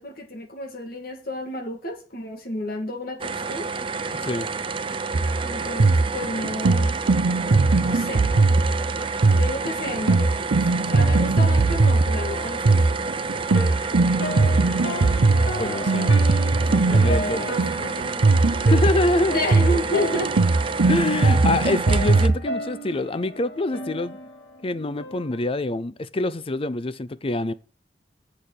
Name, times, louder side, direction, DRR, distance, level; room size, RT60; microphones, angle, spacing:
voice 1, 0.0-3.7 5.4-7.0 7.8-8.3 9.3-13.0 16.6-18.1 19.3-20.3, left 1 dB, 55° left, 2.3 m, -31 dB
sound 1, 3.2-22.3, right 4 dB, 30° right, 0.7 m, -30 dB
sound 2, 5.1-22.4, right 3 dB, 75° right, 0.7 m, -20 dB
sound 3, 10.5-25.4, equal, 70° left, 2.2 m, -35 dB
voice 2, 15.6-16.1 16.6-17.5 18.7-19.4 20.9-24.2 24.6-27.5, left 2 dB, 30° left, 0.5 m, -25 dB
7.7 x 6.6 x 6.8 m
head